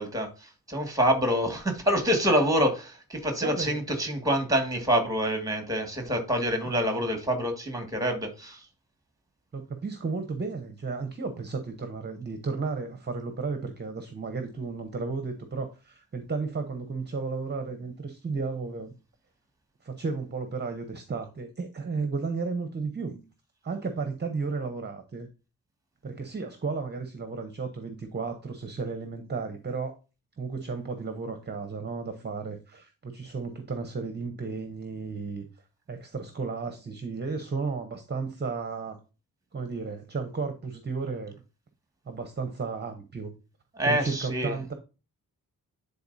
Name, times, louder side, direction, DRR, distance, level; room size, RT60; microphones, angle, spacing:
voice 1, 0.0-8.7 43.8-44.6, equal, 10° right, 1.9 m, -26 dB
voice 2, 3.4-3.8 9.5-18.9 19.8-23.2 23.6-25.3 26.0-30.0 30.4-35.4 35.9-39.0 39.5-41.3 42.1-43.3 43.9-44.7, right 4 dB, 30° right, 0.8 m, -33 dB
10.0 x 4.0 x 2.7 m
wide cardioid pair, 120°, 35 cm